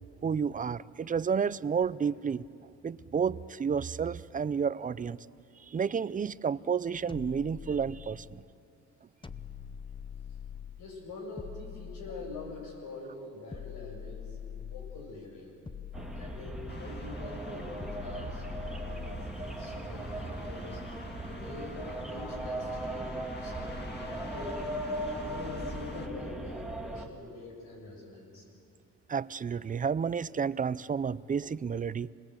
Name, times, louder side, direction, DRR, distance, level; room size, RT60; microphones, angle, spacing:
voice 1, 0.2-2.4 2.8-5.2 5.6-8.4 15.9-16.1 29.1-32.1, right 6 dB, 25° right, 18 dB, 0.5 m, -31 dB
sound 1, 7.1-8.4 9.2-10.9 11.4-12.8 13.5-15.1 15.7-17.1 17.8-19.4, left 8 dB, 15° left, 0.8 m, -44 dB
voice 2, 10.8-15.5 16.1-20.8 21.2-24.6 25.1-28.5, left 3 dB, 80° left, 0 dB, 6.8 m, -45 dB
sound 2, 15.9-27.1, right 1 dB, ahead, 2.1 m, -38 dB
sound 3, 16.7-26.1, left 3 dB, 35° left, 1.9 m, -47 dB
26.0 x 20.5 x 7.9 m, 2.6 s
cardioid pair, 90°, 30 cm